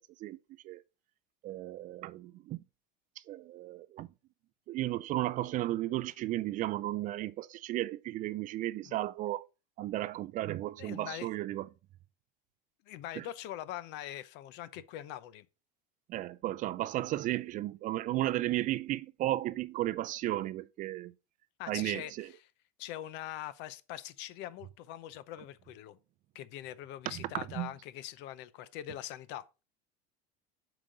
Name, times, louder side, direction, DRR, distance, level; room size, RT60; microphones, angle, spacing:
voice 1, 1.4-2.6 3.2-4.1 4.7-9.5 9.8-11.7 13.2-13.3 16.1-21.1 21.7-22.3 27.1-27.2 27.5-27.7, right 15 dB, 40° right, 0.4 m, -34 dB
voice 2, 10.8-11.3 12.9-15.5 21.6-22.4 22.8-26.0 26.3-29.4, left 12 dB, 55° left, 0.7 m, -43 dB
7.5 x 5.0 x 3.9 m
supercardioid pair, 130°, 21 cm